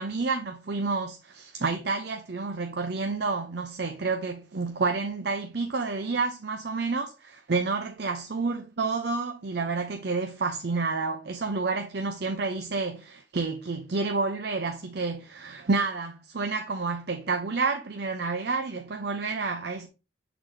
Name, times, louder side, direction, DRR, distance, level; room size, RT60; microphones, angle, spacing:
voice 1, 0.0-19.9, right 4 dB, 55° right, 0.6 m, -29 dB
7.2 x 4.0 x 3.2 m
head